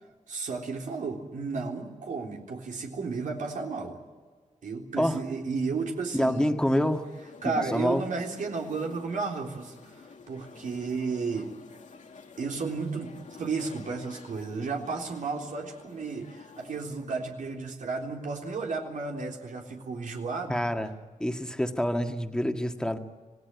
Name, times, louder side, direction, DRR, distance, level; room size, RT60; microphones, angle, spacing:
voice 1, 0.3-4.0 4.6-6.5 7.4-11.5 12.4-20.6, right 4 dB, 85° right, 1 dB, 3.6 m, -33 dB
voice 2, 6.1-7.1 7.4-8.0 20.5-20.9 21.2-23.0, equal, 5° left, 5 dB, 1.7 m, -27 dB
sound 1, 6.6-16.8, left 5 dB, 70° left, 2.0 m, -50 dB
26.5 x 18.0 x 9.5 m, 1.5 s
wide cardioid pair, 115°, 13 cm